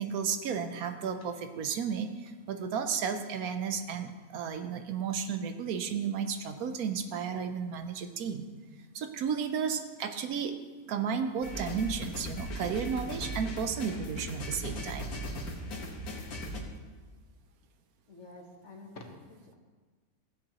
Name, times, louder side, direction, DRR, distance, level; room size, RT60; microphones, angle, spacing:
voice 1, 0.0-8.4 8.9-10.5 10.9-15.1, right 6 dB, 75° right, 8 dB, 1.1 m, -33 dB
sound 1, 11.4-16.6, equal, 70° left, 1.7 m, -38 dB
voice 2, 18.1-19.5, left 2 dB, 50° left, 1 dB, 1.4 m, -48 dB
15.0 x 7.9 x 2.9 m, 1.4 s
omnidirectional pair, 1.6 m